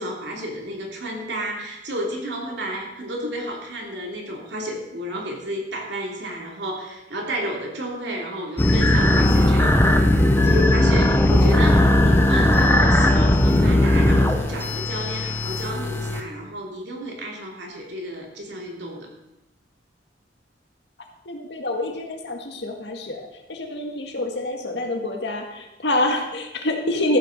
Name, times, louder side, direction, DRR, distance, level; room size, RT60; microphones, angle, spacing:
voice 1, 0.0-10.0 10.4-19.1, equal, 75° right, -1 dB, 3.0 m, -31 dB
sound 1, 8.6-16.2, left 1 dB, 10° left, 0.9 m, -18 dB
voice 2, 21.3-23.2 23.5-27.2, left 1 dB, 70° left, 3 dB, 1.9 m, -26 dB
14.0 x 6.8 x 6.5 m, 0.95 s
head